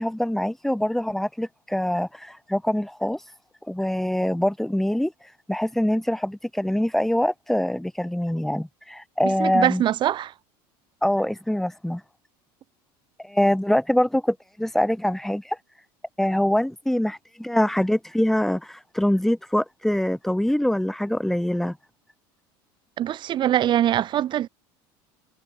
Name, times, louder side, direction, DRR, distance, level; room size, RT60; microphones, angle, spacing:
voice 1, 0.0-3.3 3.7-9.8 11.0-12.0 13.2-15.6 16.2-21.8, left 1 dB, 5° left, 1.9 m, -24 dB
voice 2, 9.2-10.3 23.0-24.5, right 11 dB, 45° right, 1.5 m, -23 dB
supercardioid pair, 110°, 11 cm